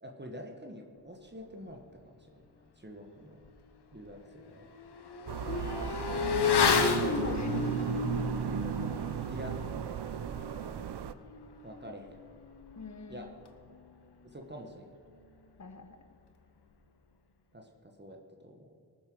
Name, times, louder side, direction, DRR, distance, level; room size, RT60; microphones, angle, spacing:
voice 1, 0.0-2.3 2.8-3.4 3.9-4.7 9.2-9.6 11.6-12.2 13.1-13.3 14.2-14.9 17.5-18.7, equal, 25° right, 2 dB, 1.4 m, -47 dB
Motorcycle / Accelerating revving vroom, 3.4-3.5 3.9-13.9 14.2-14.3, left 6 dB, 70° left, 1.2 m, -33 dB
sound 1, 5.3-11.1, right 8 dB, 75° right, 0.6 m, -35 dB
voice 2, 5.5-5.9 7.0-7.8 12.7-13.3 15.6-16.0, left 4 dB, 40° left, 8 dB, 1.3 m, -42 dB
19.0 x 7.6 x 6.1 m, 2.4 s
wide cardioid pair, 70°, 41 cm